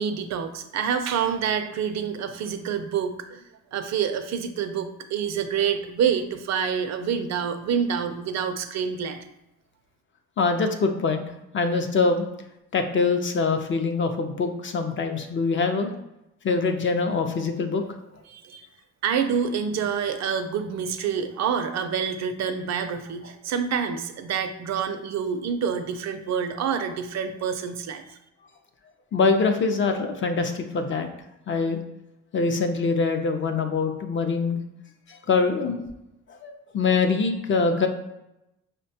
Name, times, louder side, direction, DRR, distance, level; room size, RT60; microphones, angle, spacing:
voice 1, 0.0-3.4 3.7-9.2 18.3-18.6 19.0-28.2, right 7 dB, 65° right, 8 dB, 0.4 m, -27 dB
voice 2, 10.4-11.3 11.5-12.3 12.7-15.9 16.4-17.8 29.1-31.1 31.5-31.8 32.3-34.6 35.1-35.8 36.3-37.9, left 4 dB, 40° left, 5 dB, 0.5 m, -24 dB
5.0 x 2.2 x 2.7 m, 0.88 s
cardioid pair, 90°, 30 cm